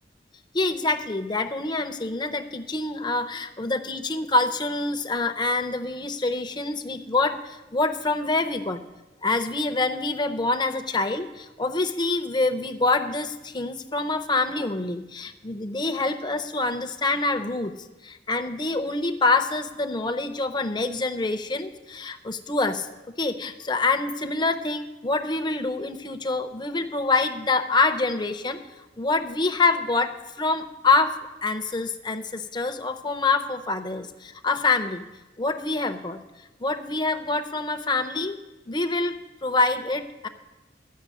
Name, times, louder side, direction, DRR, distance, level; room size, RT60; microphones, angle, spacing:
voice 1, 0.5-8.8 9.2-17.7 18.0-22.9 23.2-31.2 31.4-35.1 35.4-36.2 36.6-38.4 38.7-40.3, left 3 dB, 25° left, 7 dB, 0.7 m, -26 dB
12.0 x 6.0 x 8.4 m, 1.1 s
head